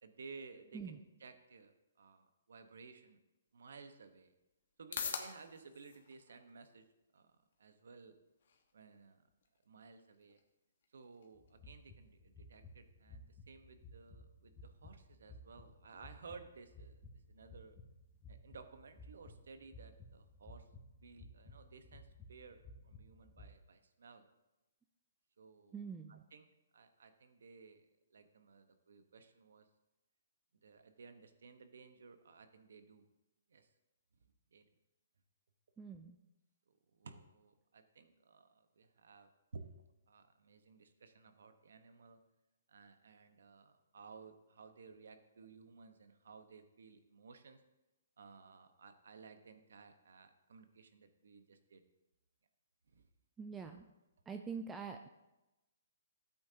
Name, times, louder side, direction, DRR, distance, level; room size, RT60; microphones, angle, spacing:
voice 1, 0.0-3.2 3.5-4.3 4.8-6.9 7.1-8.1 8.7-9.2 9.7-10.4 10.9-17.0 17.3-17.8 18.3-20.7 21.0-22.6 22.8-24.3 25.4-25.8 26.1-26.5 26.7-29.7 30.6-33.0 33.5-33.7 34.5-34.7 36.7-39.8 40.1-42.2 42.7-47.6 48.2-51.8 52.9-53.1, right 4 dB, 75° right, 8 dB, 1.2 m, -57 dB
sound 1, 3.4-20.4, left 6 dB, 65° left, 1.4 m, -53 dB
sound 2, 11.3-23.4, left 2 dB, 10° left, 1.8 m, -57 dB
voice 2, 25.7-26.2 35.8-36.2 53.4-53.9 54.3-55.1, right 5 dB, 10° right, 5 dB, 0.4 m, -45 dB
13.5 x 8.6 x 2.9 m, 0.98 s
hypercardioid pair, 150°, 0 cm